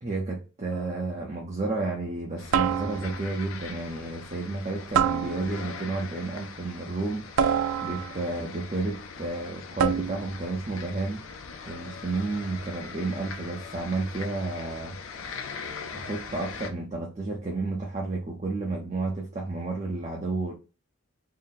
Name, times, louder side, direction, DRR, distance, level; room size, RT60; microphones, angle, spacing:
voice 1, 0.0-7.3 7.8-11.3 11.7-15.0 15.9-20.5, right 3 dB, 30° right, 0.6 m, -31 dB
sound 1, 0.7-1.1 2.5-3.3 4.9-5.8 7.4-8.3 9.8-10.4, right 7 dB, 90° right, 0.3 m, -27 dB
sound 2, 2.4-16.7, left 5 dB, 85° left, 0.6 m, -41 dB
3.8 x 2.1 x 4.0 m
head